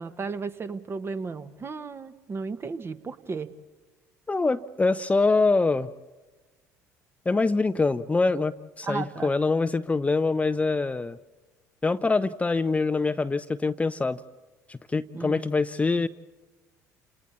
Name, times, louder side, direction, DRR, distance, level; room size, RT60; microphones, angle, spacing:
voice 1, 0.0-3.5 8.8-9.3 15.1-15.5, right 4 dB, 30° right, 11 dB, 1.2 m, -34 dB
voice 2, 4.3-5.9 7.3-11.2 11.8-14.2 14.7-16.1, left 3 dB, 15° left, 12 dB, 0.6 m, -24 dB
30.0 x 28.0 x 4.2 m, 1.2 s
figure-of-eight pair, 60°, 8 cm